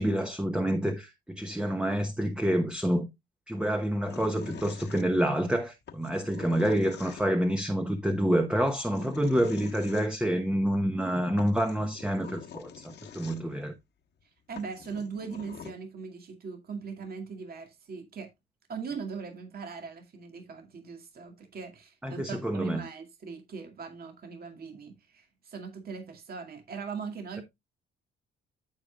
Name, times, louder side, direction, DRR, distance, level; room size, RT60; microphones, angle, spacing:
voice 1, 0.0-3.1 3.5-13.7 22.0-22.8, equal, 5° right, 1.1 m, -28 dB
sound 1, 4.1-5.4 5.9-7.5 8.6-10.1 11.0-11.1 11.4-13.7 14.2-14.3 14.6-15.7, left 7 dB, 60° left, 1.4 m, -46 dB
voice 2, 14.5-18.3 18.7-27.4, right 5 dB, 50° right, 2.3 m, -40 dB
14.0 x 5.1 x 2.4 m
cardioid pair, 90°, 20 cm